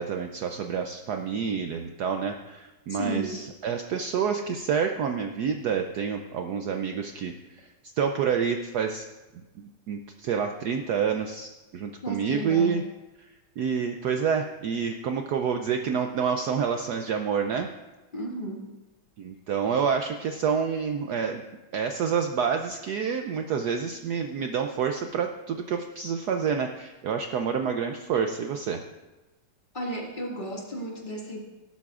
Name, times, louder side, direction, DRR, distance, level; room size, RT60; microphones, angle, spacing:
voice 1, 0.0-7.7 7.9-9.1 9.6-12.8 13.2-13.3 13.6-17.7 19.2-21.4 21.7-28.8, right 6 dB, 85° right, 5 dB, 0.8 m, -28 dB
voice 2, 2.9-3.3 12.0-12.8 18.1-18.7 29.7-31.4, right 1 dB, 25° left, -2 dB, 1.9 m, -33 dB
18.0 x 12.5 x 2.4 m, 1.1 s
omnidirectional pair, 2.4 m